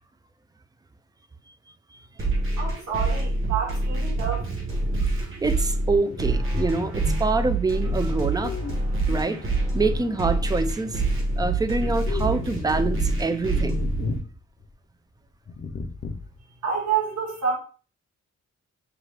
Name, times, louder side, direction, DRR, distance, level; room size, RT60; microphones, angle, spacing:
sound 1, 2.2-14.2, right 2 dB, 45° right, 1.3 m, -26 dB
voice 1, 2.6-4.5 16.6-17.6, right 6 dB, 90° right, 1.6 m, -28 dB
voice 2, 5.2-8.6 9.1-9.4 9.7-11.0 11.4-13.9, right 3 dB, 15° right, 0.3 m, -26 dB
sound 2, 5.8-10.9 11.2-13.0 13.5-14.4 14.6-14.7 15.5-16.4, left 4 dB, 40° left, 0.6 m, -35 dB
5.8 x 2.3 x 3.3 m
wide cardioid pair, 145°, 29 cm